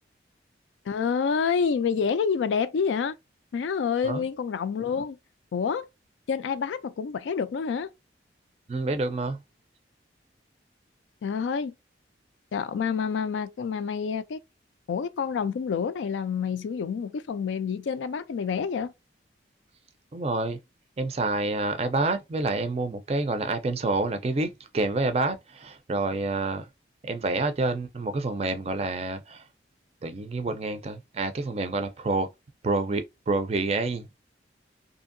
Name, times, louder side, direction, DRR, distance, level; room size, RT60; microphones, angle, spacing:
voice 1, 0.9-3.2 3.5-5.2 5.5-5.9 6.3-7.9 11.2-11.7 12.5-14.4 14.9-18.9, left 6 dB, 85° left, 0.3 m, -28 dB
voice 2, 8.7-9.4 20.1-20.6 21.0-26.7 27.0-29.4 30.0-32.3 32.6-34.1, right 3 dB, 35° right, 0.4 m, -28 dB
2.7 x 2.6 x 2.5 m
head